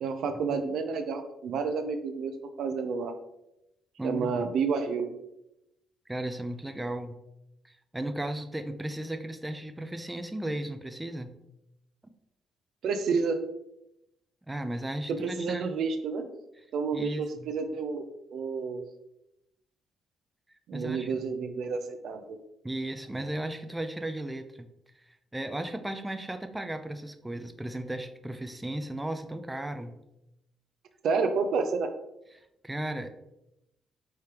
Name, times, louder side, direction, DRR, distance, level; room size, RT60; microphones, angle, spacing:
voice 1, 0.0-2.3 2.6-3.1 4.0-5.1 12.8-13.4 15.1-16.3 16.7-18.0 18.3-18.8 20.7-22.4 31.0-31.9, right 5 dB, 75° right, 7 dB, 0.5 m, -30 dB
voice 2, 4.0-4.5 6.1-7.2 7.6-11.4 14.5-15.7 16.9-17.5 20.7-21.1 22.6-24.7 24.9-30.0 32.3-33.1, right 1 dB, 10° right, 7 dB, 0.4 m, -35 dB
4.8 x 3.3 x 2.9 m, 0.86 s
cardioid pair, 90°, 0 cm